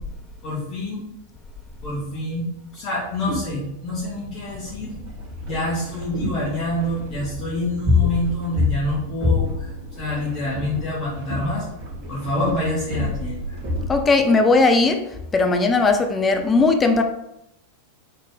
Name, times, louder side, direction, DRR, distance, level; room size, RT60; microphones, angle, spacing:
voice 1, 0.4-1.0 1.8-5.0 5.4-9.7 10.0-11.6 12.1-13.6, left 1 dB, 35° left, -7 dB, 1.9 m, -27 dB
sound 1, 3.0-13.9, left 3 dB, 45° right, 1.5 m, -28 dB
voice 2, 13.9-17.0, left 3 dB, 20° left, 5 dB, 0.8 m, -18 dB
5.1 x 4.3 x 4.9 m, 0.85 s
figure-of-eight pair, 90°, 0 cm